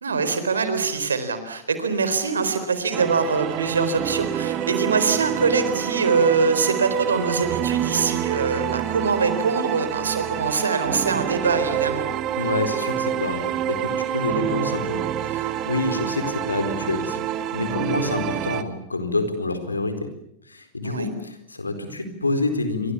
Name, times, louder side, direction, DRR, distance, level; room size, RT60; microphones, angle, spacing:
voice 1, 0.0-12.1 20.8-21.1, right 4 dB, 70° right, 10 dB, 4.1 m, -23 dB
sound 1, 2.9-18.6, right 11 dB, 35° right, 1.8 m, -27 dB
voice 2, 12.4-17.3 17.5-20.1 20.5-22.9, left 3 dB, 80° left, 8 dB, 4.3 m, -27 dB
29.0 x 25.5 x 7.1 m, 0.80 s
figure-of-eight pair, 90°, 0 cm